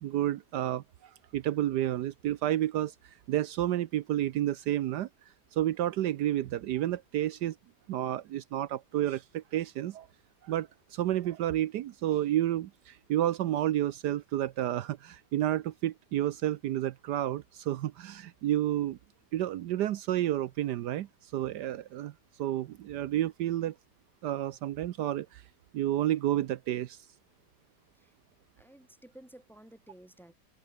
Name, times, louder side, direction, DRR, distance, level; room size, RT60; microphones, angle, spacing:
voice 1, 0.0-5.1 5.5-7.6 7.9-10.1 10.4-19.0 19.3-22.1 22.4-23.7 24.2-25.4 25.7-27.0, right 13 dB, 75° right, 1.3 m, -30 dB
voice 2, 28.6-30.3, right 1 dB, ahead, 2.1 m, -54 dB
open air
omnidirectional pair, 1.9 m